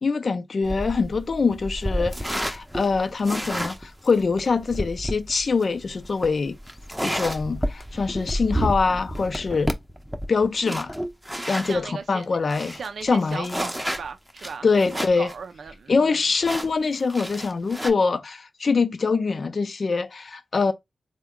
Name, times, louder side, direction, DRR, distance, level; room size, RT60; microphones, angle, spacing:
voice 1, 0.0-6.6 7.0-9.7 10.3-10.9 11.5-13.7 14.6-15.3 15.9-20.7, left 4 dB, 60° left, 0.5 m, -24 dB
sound 1, 0.6-11.8 12.2-12.3 12.5-15.3 15.7-15.8 16.4-17.9, equal, 5° right, 0.6 m, -31 dB
voice 2, 11.7-16.2, right 5 dB, 75° right, 0.4 m, -37 dB
3.5 x 2.1 x 3.5 m
cardioid pair, 50°, 0 cm